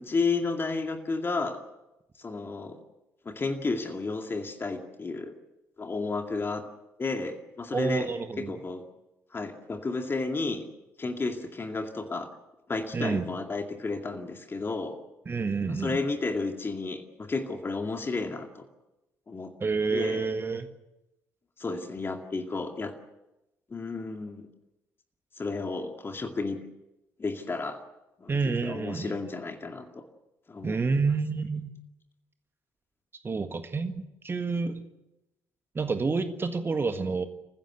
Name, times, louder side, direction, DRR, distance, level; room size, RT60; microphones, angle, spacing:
voice 1, 0.0-1.6 2.2-2.8 3.3-5.3 5.8-6.6 7.0-8.1 8.4-8.8 9.3-10.7 11.0-12.3 12.7-15.0 15.6-18.7 19.3-19.5 19.9-20.3 21.6-23.0 23.7-24.4 25.4-26.6 27.2-27.8 28.2-30.0 30.5-30.8, left 3 dB, 25° left, 5 dB, 2.3 m, -32 dB
voice 2, 7.7-8.5 12.9-13.2 15.3-16.0 19.6-20.7 28.3-29.2 30.6-31.7 33.2-34.8 35.7-37.2, right 4 dB, 25° right, 8 dB, 1.7 m, -29 dB
29.0 x 15.5 x 8.1 m, 0.95 s
figure-of-eight pair, 50°, 9 cm